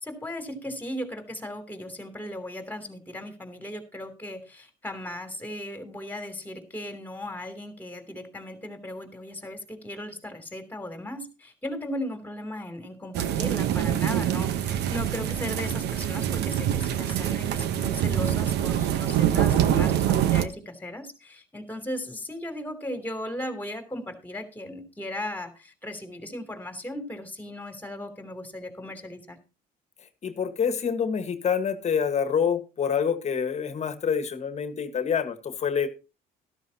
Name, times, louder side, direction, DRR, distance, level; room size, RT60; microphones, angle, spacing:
voice 1, 0.0-29.4, left 1 dB, 10° left, 7 dB, 3.0 m, -37 dB
sound 1, 13.1-20.5, right 11 dB, 80° right, 1.0 m, -25 dB
voice 2, 30.2-35.9, left 7 dB, 40° left, 9 dB, 1.5 m, -27 dB
13.0 x 13.0 x 2.9 m, 0.31 s
cardioid pair, 110°, 17 cm